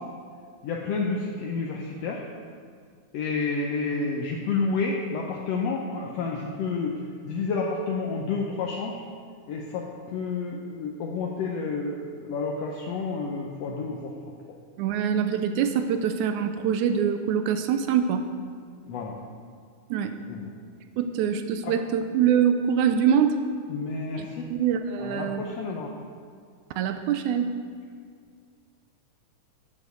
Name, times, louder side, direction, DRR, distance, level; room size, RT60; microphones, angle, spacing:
voice 1, 0.6-2.2 3.1-9.0 9.5-14.1 18.9-19.2 20.3-20.5 21.6-21.7 23.7-24.5 25.0-25.9, left 4 dB, 70° left, -1 dB, 1.6 m, -30 dB
voice 2, 14.8-18.3 19.9-20.2 21.0-23.3 24.2-25.4 26.8-27.5, right 8 dB, 80° right, 8 dB, 1.9 m, -24 dB
11.0 x 7.5 x 6.8 m, 2.1 s
omnidirectional pair, 3.7 m